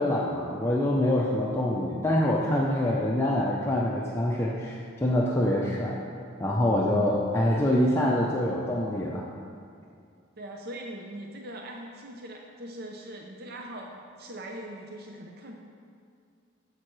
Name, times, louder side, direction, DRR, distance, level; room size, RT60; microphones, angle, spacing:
voice 1, 0.0-6.0 6.4-9.3, left 1 dB, 10° left, -4 dB, 0.5 m, -25 dB
voice 2, 10.4-15.5, right 1 dB, 50° right, 1 dB, 0.6 m, -41 dB
10.5 x 7.4 x 3.2 m, 2.3 s
head